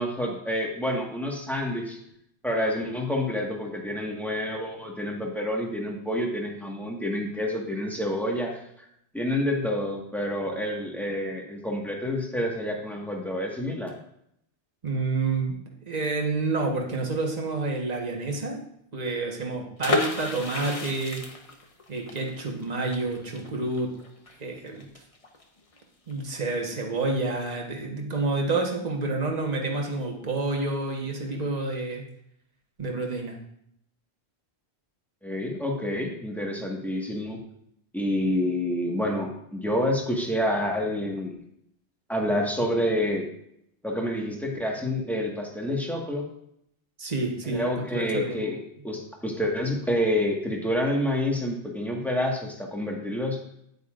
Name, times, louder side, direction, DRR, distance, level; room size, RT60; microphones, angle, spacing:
voice 1, 0.0-2.0 2.4-8.9 9.1-13.9 35.2-37.4 37.9-41.3 42.1-43.3 43.8-46.3 47.5-48.6 48.8-53.4, left 1 dB, ahead, -1 dB, 1.5 m, -28 dB
voice 2, 14.8-15.6 15.9-18.6 18.9-21.2 21.9-23.9 24.4-24.9 26.1-32.0 32.8-33.4 47.0-48.4, right 3 dB, 40° right, 1 dB, 1.4 m, -29 dB
sound 1, 19.8-25.4 25.7-25.8 26.1-26.4, left 3 dB, 35° left, 1.0 m, -32 dB
9.6 x 9.1 x 2.5 m, 0.73 s
omnidirectional pair, 1.1 m